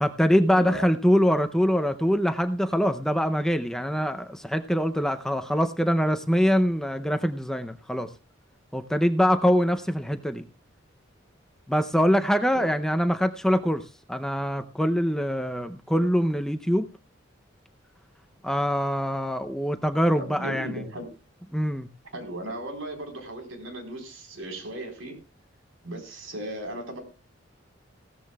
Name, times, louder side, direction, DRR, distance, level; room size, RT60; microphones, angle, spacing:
voice 1, 0.0-8.1 8.7-10.4 11.7-13.8 14.1-16.9 18.4-20.8 21.5-21.9, equal, 5° left, 8 dB, 0.5 m, -24 dB
voice 2, 0.5-0.9 12.5-12.7 20.2-21.1 22.1-25.2 25.8-27.0, right 1 dB, 85° right, 3 dB, 4.0 m, -36 dB
16.5 x 13.5 x 2.3 m, 0.29 s
head